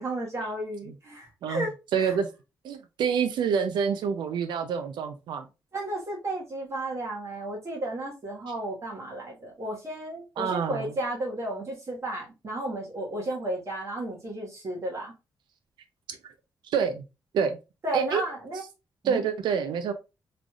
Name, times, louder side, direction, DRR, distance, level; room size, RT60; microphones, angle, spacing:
voice 1, 0.0-1.7 2.0-2.1 5.7-15.1 17.8-18.6 19.0-19.2, right 1 dB, 40° right, 1.5 m, -33 dB
voice 2, 1.4-2.3 2.6-5.5 10.4-10.9 16.1-16.3 16.6-17.0 17.3-17.6 17.9-18.2 19.0-19.9, right 7 dB, 85° right, 0.5 m, -27 dB
3.8 x 3.2 x 2.3 m
cardioid pair, 120°, 8 cm